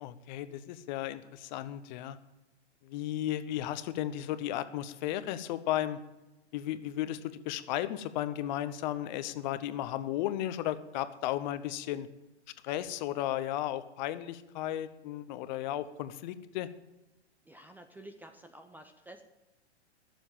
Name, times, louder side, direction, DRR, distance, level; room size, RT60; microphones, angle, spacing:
voice 1, 0.0-2.2 2.8-6.0 6.5-12.1 12.6-16.7, left 13 dB, 40° left, 13 dB, 0.9 m, -34 dB
voice 2, 17.5-19.2, right 1 dB, 5° right, 7 dB, 0.5 m, -50 dB
16.5 x 7.2 x 7.5 m, 1.0 s
hypercardioid pair, 120°, 34 cm